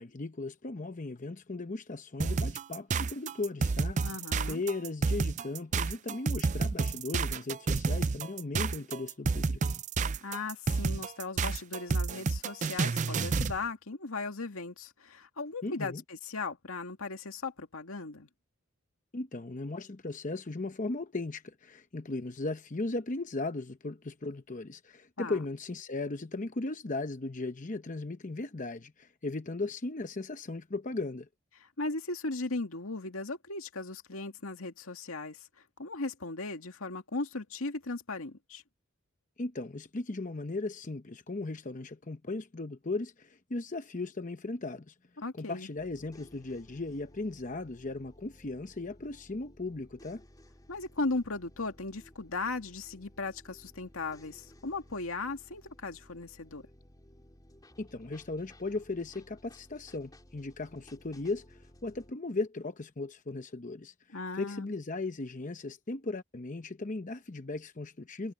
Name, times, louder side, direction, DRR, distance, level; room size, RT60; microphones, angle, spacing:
voice 1, 0.0-4.0 4.5-9.6 15.6-16.0 19.1-31.3 39.4-44.9 45.3-50.2 57.8-63.9 64.4-68.3, left 2 dB, 40° left, 0.8 m, -37 dB
sound 1, 2.2-13.6, right 4 dB, 35° right, 0.4 m, -30 dB
voice 2, 4.0-4.6 10.2-18.3 25.2-25.4 31.8-35.5 35.8-38.6 45.2-45.7 50.7-56.7 64.1-64.7, left 3 dB, 85° left, 2.2 m, -37 dB
sound 2, 45.8-62.1, equal, 20° left, 3.7 m, -57 dB
head